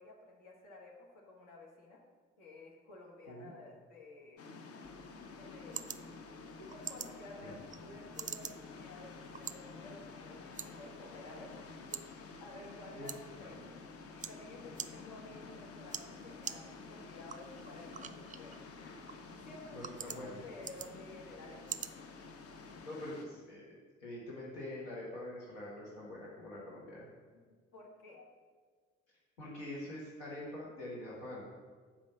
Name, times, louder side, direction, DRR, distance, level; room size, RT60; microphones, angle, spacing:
voice 1, 0.0-2.0 2.4-4.4 5.3-6.0 6.6-11.8 12.1-13.8 14.2-18.5 19.4-21.9 27.7-28.3, left 2 dB, 60° left, -1 dB, 1.6 m, -53 dB
sound 1, 4.4-23.3, left 4 dB, 40° left, 0.8 m, -50 dB
sound 2, 4.8-22.8, right 8 dB, 25° right, 0.4 m, -49 dB
voice 2, 13.0-13.6 19.7-20.4 22.8-27.1 29.4-31.4, left 1 dB, 80° left, -6 dB, 1.4 m, -45 dB
7.0 x 5.3 x 6.8 m, 1.5 s
figure-of-eight pair, 40°, 35 cm